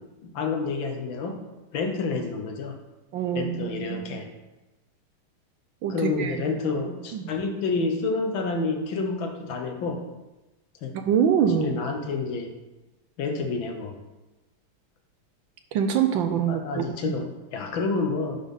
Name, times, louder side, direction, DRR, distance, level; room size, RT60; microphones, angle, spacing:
voice 1, 0.2-1.4 1.7-2.8 3.3-4.3 5.9-10.0 10.8-10.9 11.6-12.5 13.2-13.9 16.5-18.4, left 4 dB, 70° left, 5 dB, 1.6 m, -29 dB
voice 2, 3.1-4.2 5.8-6.4 7.1-7.4 10.9-11.8 15.7-17.1, right 8 dB, 75° right, 7 dB, 1.3 m, -25 dB
11.5 x 3.9 x 5.4 m, 1.1 s
omnidirectional pair, 2.4 m